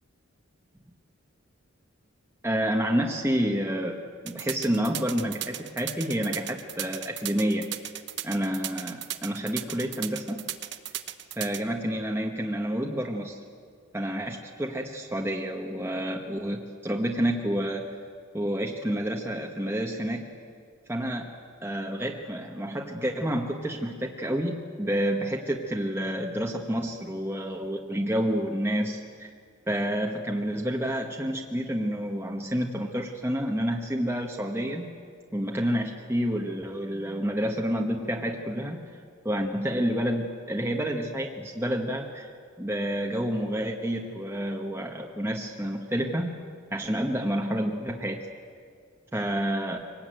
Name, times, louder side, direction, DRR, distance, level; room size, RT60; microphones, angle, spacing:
voice 1, 2.4-4.0 4.2-7.7 8.2-10.4 11.4-13.4 13.9-17.9 18.3-20.2 20.9-21.3 21.6-29.3 29.7-34.9 35.3-38.8 39.2-42.3 42.6-46.3 46.7-48.3 49.1-49.9, equal, 10° right, 0 dB, 1.3 m, -29 dB
sound 1, 4.3-11.6, right 13 dB, 60° right, 1.2 m, -35 dB
24.5 x 19.5 x 9.2 m, 2.2 s
head